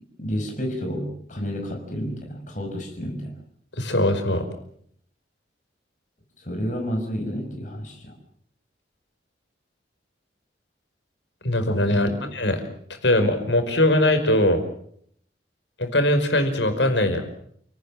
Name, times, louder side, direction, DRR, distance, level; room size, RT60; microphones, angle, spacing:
voice 1, 0.2-3.4 6.4-8.2 11.9-12.2, equal, 45° left, 2 dB, 6.0 m, -30 dB
voice 2, 3.8-4.5 11.4-12.6 13.0-14.6 15.8-17.3, left 1 dB, 80° left, 7 dB, 5.2 m, -21 dB
29.5 x 18.5 x 7.6 m, 0.66 s
head